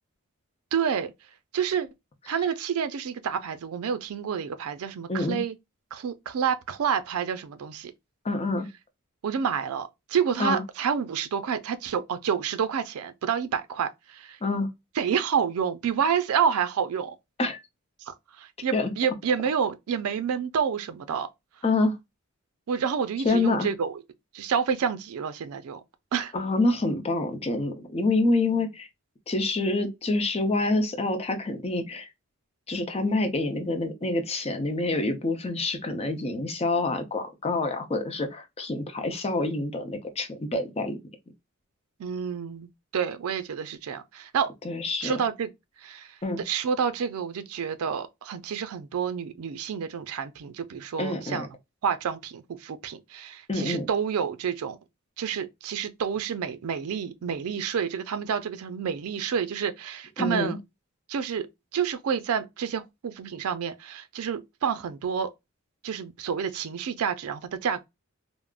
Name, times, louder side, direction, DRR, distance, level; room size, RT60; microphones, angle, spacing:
voice 1, 0.7-1.1 1.5-1.9 2.3-5.5 5.9-7.9 9.2-14.4 15.0-17.1 18.0-21.3 22.7-24.0 24.3-25.8 26.1-26.3 42.0-42.7 42.9-44.5 45.0-45.5 45.8-51.5 51.8-54.8 55.2-60.6 61.1-61.5 61.7-65.3 65.8-67.8, right 7 dB, 85° right, 0.4 m, -29 dB
voice 2, 5.1-5.4 8.2-8.7 10.4-10.6 14.4-14.7 17.4-17.6 18.7-18.9 21.6-22.0 23.2-23.7 26.3-28.9 29.3-32.1 32.7-41.0 44.6-45.2 46.2-46.4 51.0-51.5 53.5-53.9 60.2-60.6, left 2 dB, 30° left, 0.6 m, -27 dB
3.5 x 2.0 x 2.3 m
head